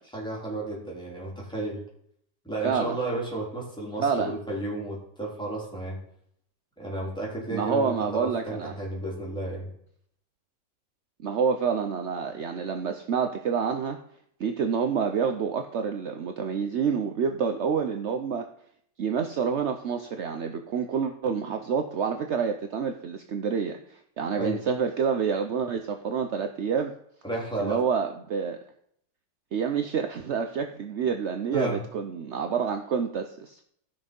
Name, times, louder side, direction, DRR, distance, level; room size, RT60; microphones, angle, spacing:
voice 1, 0.1-1.8 2.4-6.0 6.8-9.7 24.4-24.6 27.2-27.8 31.5-31.8, right 2 dB, ahead, -5 dB, 3.8 m, -32 dB
voice 2, 2.6-3.0 4.0-4.3 7.5-8.7 11.2-14.0 14.4-18.5 19.0-26.9 27.6-28.6 29.5-33.6, right 6 dB, 60° right, 6 dB, 0.7 m, -28 dB
15.0 x 6.2 x 5.3 m, 0.69 s
omnidirectional pair, 2.0 m